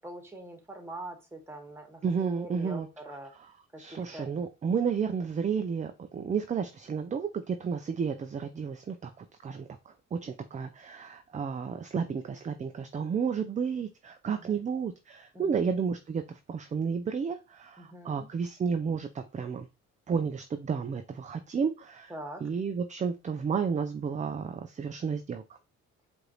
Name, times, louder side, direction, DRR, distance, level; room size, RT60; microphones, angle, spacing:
voice 1, 0.0-3.3 3.7-4.3 14.3-14.6 15.3-15.6 17.8-18.3 22.1-22.4, right 1 dB, 10° right, 3 dB, 1.3 m, -43 dB
voice 2, 2.0-2.9 3.8-19.7 20.1-22.1 22.4-25.6, right 6 dB, 25° right, 8 dB, 0.4 m, -32 dB
4.8 x 2.6 x 3.0 m, 0.28 s
cardioid pair, 90°, 30 cm